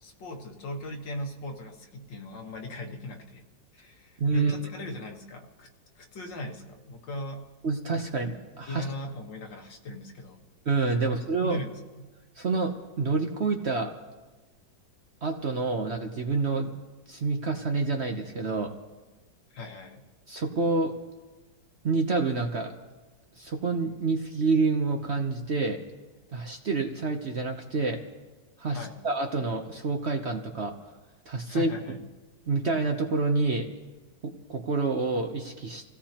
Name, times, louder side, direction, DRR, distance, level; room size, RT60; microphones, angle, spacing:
voice 1, 0.0-3.4 3.7-5.7 6.0-7.5 8.7-10.4 11.0-11.2 11.4-12.1 19.5-20.1 28.7-29.0 31.5-32.1, left 1 dB, 80° left, 2 dB, 2.1 m, -38 dB
voice 2, 4.2-4.5 7.6-8.9 10.7-11.6 12.4-13.9 15.2-16.7 17.1-18.7 20.3-20.9 21.8-22.7 23.4-25.8 26.3-28.0 28.6-30.7 31.3-31.7 32.5-33.7 34.2-35.8, right 3 dB, 50° right, 3 dB, 0.9 m, -28 dB
27.0 x 16.5 x 2.9 m, 1.2 s
omnidirectional pair, 1.9 m